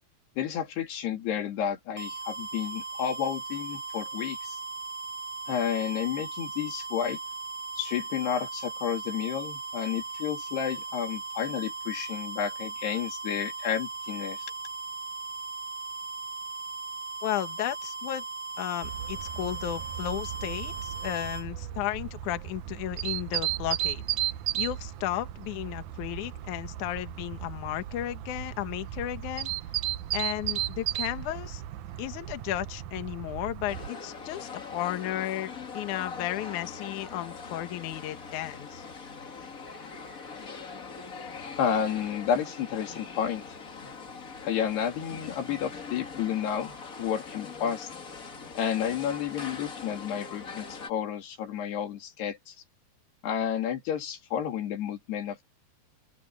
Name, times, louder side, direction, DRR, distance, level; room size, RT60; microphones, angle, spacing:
voice 1, 0.4-4.6 5.5-7.2 7.8-14.4 41.5-43.4 43.8-44.0 44.4-47.9 48.6-52.6 53.2-55.5, left 9 dB, 85° left, 4.7 m, -31 dB
sound 1, 2.0-21.5, right 4 dB, 10° right, 6.0 m, -38 dB
voice 2, 17.2-18.2 18.6-24.0 24.5-29.5 30.1-31.6 32.0-38.9, left 13 dB, 65° left, 2.3 m, -34 dB
sound 2, 18.8-33.9, right 13 dB, 75° right, 1.8 m, -35 dB
sound 3, 33.7-50.9, left 5 dB, 40° left, 1.1 m, -42 dB
open air
omnidirectional pair, 4.6 m